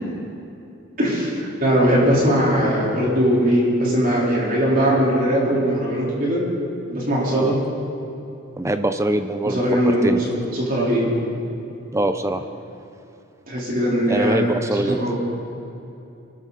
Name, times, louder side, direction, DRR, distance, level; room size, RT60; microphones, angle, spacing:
voice 1, 1.0-6.4 6.9-7.6 9.4-11.1 13.5-14.4 14.7-15.2, equal, 40° right, -5 dB, 4.1 m, -20 dB
voice 2, 8.6-9.6 9.9-10.2 11.9-12.5 14.1-15.0, right 1 dB, 15° right, 8 dB, 0.6 m, -23 dB
23.5 x 13.0 x 4.2 m, 2.8 s
head